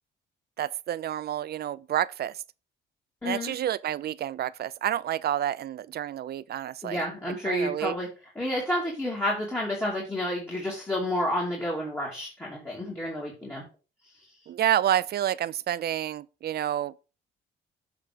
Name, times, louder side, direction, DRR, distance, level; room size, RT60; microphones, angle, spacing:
voice 1, 0.6-2.4 3.2-7.0 7.4-7.9 14.5-16.9, right 11 dB, 55° right, 0.4 m, -29 dB
voice 2, 3.2-3.5 6.8-8.1 8.4-13.6, left 1 dB, 10° left, 2.6 m, -30 dB
7.8 x 3.5 x 5.0 m
cardioid pair, 90°, 20 cm